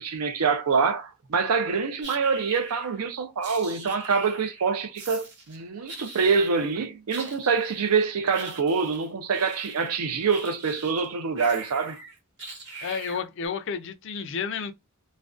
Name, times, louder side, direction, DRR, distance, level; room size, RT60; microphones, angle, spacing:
voice 1, 0.0-12.0, right 5 dB, 90° right, 0.5 m, -25 dB
sound 1, 2.0-3.0 3.4-4.7 5.0-5.6 5.9-6.7 7.1-11.1 11.4-13.5, right 3 dB, 55° right, 0.9 m, -42 dB
voice 2, 12.8-14.7, left 6 dB, 55° left, 0.4 m, -31 dB
2.4 x 2.1 x 2.4 m
head